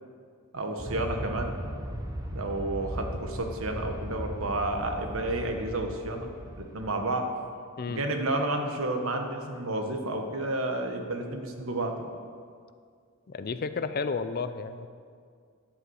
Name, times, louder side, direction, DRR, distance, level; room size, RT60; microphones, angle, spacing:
voice 1, 0.5-1.5 2.3-6.3 6.6-7.3 7.9-12.1, right 2 dB, 75° right, 4 dB, 1.3 m, -31 dB
Aircraft, 0.8-7.1, equal, 15° right, 1.0 m, -38 dB
voice 2, 13.3-14.9, left 4 dB, 45° left, 11 dB, 0.5 m, -32 dB
10.5 x 7.9 x 6.4 m, 2.1 s
head